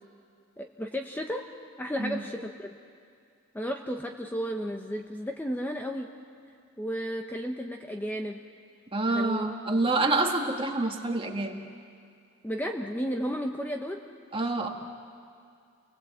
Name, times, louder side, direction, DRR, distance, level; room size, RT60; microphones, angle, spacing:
voice 1, 0.6-1.4 1.8-2.8 3.5-6.1 6.8-8.4 9.1-9.5 10.0-10.1 12.4-14.0, equal, 10° left, 3 dB, 0.9 m, -33 dB
voice 2, 8.9-11.6 14.3-14.7, right 2 dB, 25° right, 3 dB, 1.7 m, -27 dB
30.0 x 20.5 x 8.1 m, 2.3 s
head